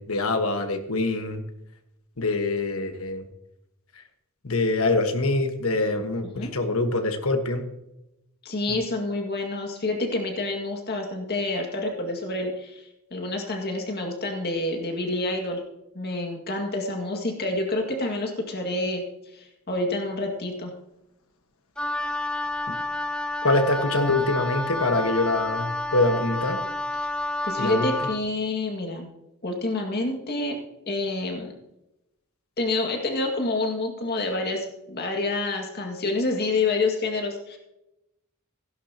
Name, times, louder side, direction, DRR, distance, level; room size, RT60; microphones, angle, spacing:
voice 1, 0.0-1.4 2.2-3.2 4.4-7.7 8.7-8.8 22.7-22.8 23.4-26.6 27.6-27.9, left 2 dB, 80° left, 6 dB, 1.4 m, -24 dB
voice 2, 8.5-12.8 13.1-15.6 15.9-19.0 19.3-20.7 27.4-29.1 29.4-30.6 30.9-31.5 32.6-37.6, left 2 dB, 50° left, 2 dB, 2.0 m, -28 dB
Wind instrument woodwind instrument, 21.8-28.2, left 2 dB, 5° left, 0.6 m, -29 dB
16.5 x 11.0 x 2.9 m, 0.89 s
head